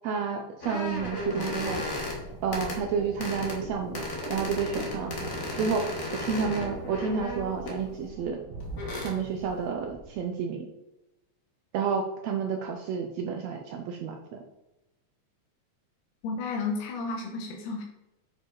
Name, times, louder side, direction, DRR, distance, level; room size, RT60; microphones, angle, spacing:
voice 1, 0.0-1.8 2.4-5.1 5.5-5.9 6.2-8.4 9.0-10.7 11.7-14.4, right 6 dB, 75° right, 3 dB, 1.7 m, -30 dB
sound 1, 0.6-2.2 2.5-2.8 3.2-3.6 3.9-7.8 8.6-9.1, left 2 dB, 45° left, 1.1 m, -35 dB
sound 2, 0.8-10.2, right 3 dB, 60° right, 1.5 m, -42 dB
voice 2, 16.2-17.8, left 4 dB, 80° left, 1 dB, 2.6 m, -32 dB
9.0 x 5.1 x 3.9 m, 0.95 s
omnidirectional pair, 3.6 m